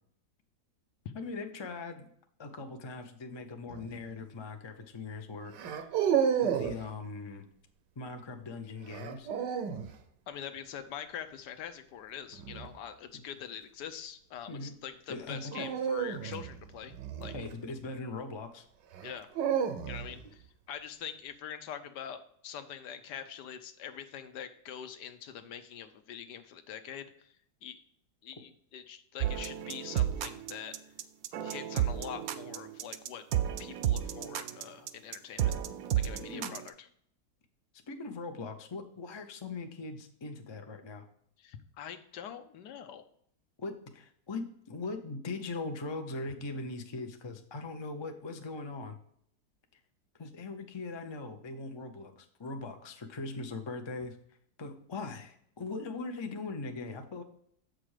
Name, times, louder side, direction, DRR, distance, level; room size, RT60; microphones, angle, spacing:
voice 1, 1.1-2.1 2.4-5.9 6.4-7.5 8.0-9.3 13.1-13.2 14.5-14.8 15.1-15.7 17.3-18.6 36.0-36.5 37.9-41.0 43.6-49.0 50.2-54.2 54.6-57.2, left 3 dB, 40° left, 6 dB, 0.3 m, -40 dB
sound 1, 3.7-4.0 5.5-6.8 8.9-9.9 12.3-12.7 15.5-17.9 18.9-20.2, right 8 dB, 85° right, 1.4 m, -31 dB
voice 2, 10.3-17.3 19.0-19.3 19.9-27.3 27.6-27.8 28.2-30.8 31.4-33.2 33.6-35.5 35.9-36.9 41.4-43.0, left 9 dB, 80° left, 9 dB, 1.3 m, -44 dB
sound 2, 29.2-36.7, right 11 dB, 70° right, 0.9 m, -32 dB
7.5 x 5.1 x 4.8 m, 0.66 s
omnidirectional pair, 1.8 m